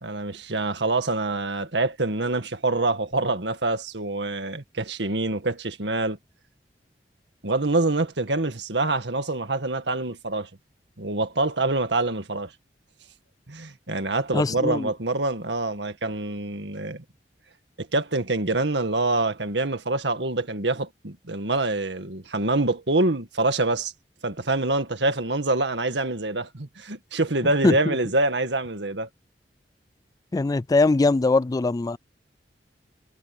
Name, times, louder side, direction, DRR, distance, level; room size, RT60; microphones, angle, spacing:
voice 1, 0.0-6.2 7.4-10.5 11.0-12.5 13.5-17.0 17.8-23.9 24.2-29.1, right 2 dB, 85° right, 2.0 m, -26 dB
voice 2, 14.3-14.9 27.6-28.0 30.3-32.0, left 3 dB, 20° left, 0.3 m, -21 dB
head